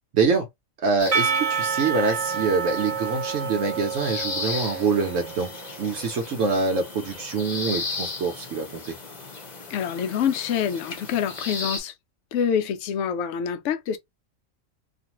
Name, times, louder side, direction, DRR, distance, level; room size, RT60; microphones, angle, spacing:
voice 1, 0.1-0.5 0.8-5.5 5.8-8.9, right 4 dB, 70° right, 1.0 m, -25 dB
sound 1, 1.0-11.8, left 3 dB, 40° left, 0.9 m, -36 dB
Percussion / Church bell, 1.1-6.1, right 6 dB, 45° right, 0.4 m, -29 dB
voice 2, 9.7-11.9 12.3-14.0, left 8 dB, 70° left, 0.9 m, -26 dB
2.5 x 2.5 x 2.8 m
omnidirectional pair, 1.4 m